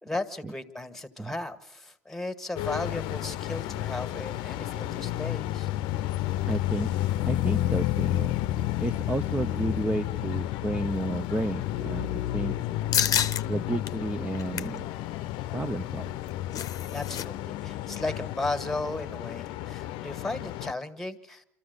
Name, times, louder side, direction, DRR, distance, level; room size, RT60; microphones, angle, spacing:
voice 1, 0.0-5.7 16.9-21.4, left 2 dB, 5° left, 8 dB, 1.9 m, -35 dB
sound 1, 2.6-20.7, left 14 dB, 65° left, 0.8 m, -31 dB
voice 2, 6.5-6.9 7.3-8.4 8.8-12.5 13.5-14.9 15.5-16.1, right 2 dB, 15° right, 5 dB, 0.8 m, -31 dB
sound 2, 12.9-13.4 13.9-14.0 14.3-14.8 16.1-17.3 17.5-17.6 18.0-18.2, left 9 dB, 40° left, 0.9 m, -28 dB
26.0 x 14.0 x 8.2 m, 0.77 s
hypercardioid pair, 85°, 9 cm